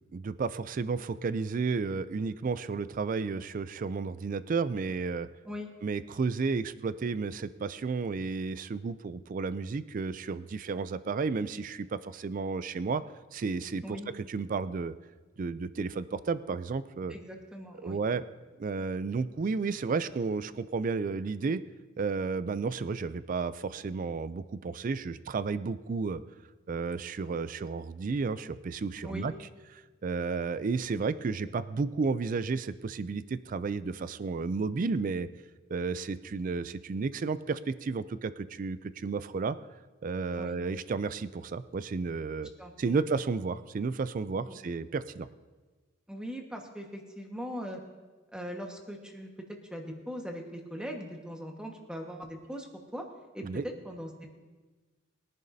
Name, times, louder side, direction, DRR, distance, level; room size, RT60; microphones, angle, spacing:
voice 1, 0.1-5.3 5.8-13.0 13.3-14.9 15.4-17.1 17.8-18.2 18.6-21.6 22.0-26.2 26.7-29.3 29.7-35.3 35.7-39.6 40.0-42.5 42.8-45.3 53.4-53.6, right 4 dB, 40° right, 15 dB, 0.3 m, -32 dB
voice 2, 17.1-18.0 29.0-29.3 40.3-40.6 42.6-43.0 44.4-44.6 46.1-47.8 48.3-52.7 52.9-53.1 53.3-54.3, equal, 5° right, 1 dB, 1.4 m, -40 dB
21.5 x 10.5 x 2.7 m, 1.3 s
head